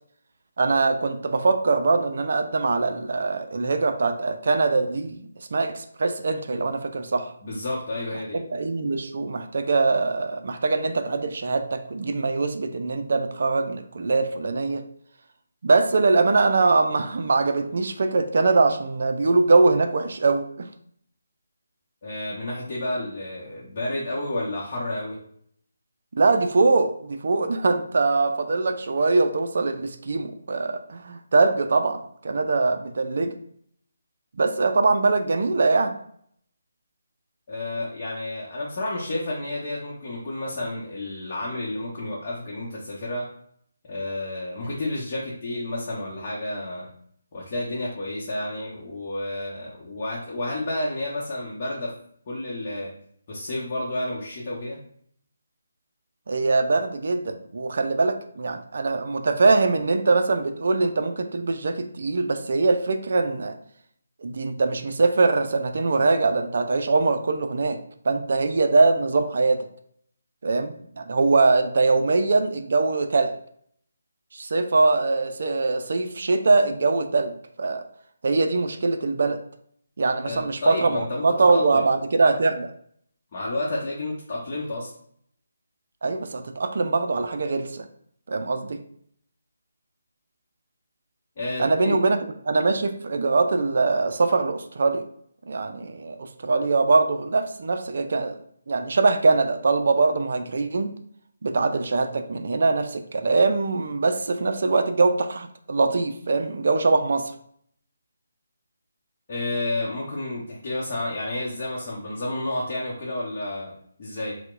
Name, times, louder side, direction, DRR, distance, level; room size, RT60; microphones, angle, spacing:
voice 1, 0.6-7.3 8.3-14.8 15.6-20.7 26.2-33.4 34.4-36.0 56.3-63.6 64.2-67.8 68.0-69.6 70.4-73.3 74.3-77.8 78.2-79.4 80.0-82.7 86.0-87.9 88.3-88.8 91.6-95.0 95.5-98.4 98.7-100.9 101.4-107.3, right 3 dB, 60° right, 7 dB, 0.3 m, -22 dB
voice 2, 7.4-8.4 22.0-25.2 37.5-43.3 43.9-46.9 47.3-51.9 52.3-52.9 53.3-54.8 80.2-81.9 83.3-84.9 91.4-92.0 109.3-114.4, left 1 dB, 40° left, -6 dB, 0.8 m, -30 dB
4.3 x 2.1 x 2.4 m, 0.65 s
figure-of-eight pair, 150°, 0 cm